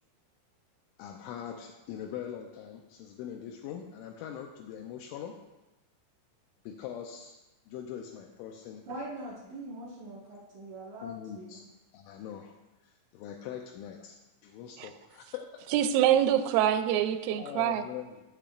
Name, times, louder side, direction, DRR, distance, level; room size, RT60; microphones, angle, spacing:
voice 1, 1.0-5.3 6.6-7.4 7.7-8.8 11.0-11.6 11.9-12.6 12.8-14.2 14.4-15.9 17.3-18.2, left 9 dB, 85° left, 2 dB, 2.8 m, -42 dB
voice 2, 8.9-11.7, right 2 dB, 70° right, -7 dB, 1.9 m, -42 dB
voice 3, 15.7-17.8, right 11 dB, 85° right, 9 dB, 3.2 m, -25 dB
14.5 x 7.1 x 2.4 m, 1.0 s
omnidirectional pair, 5.9 m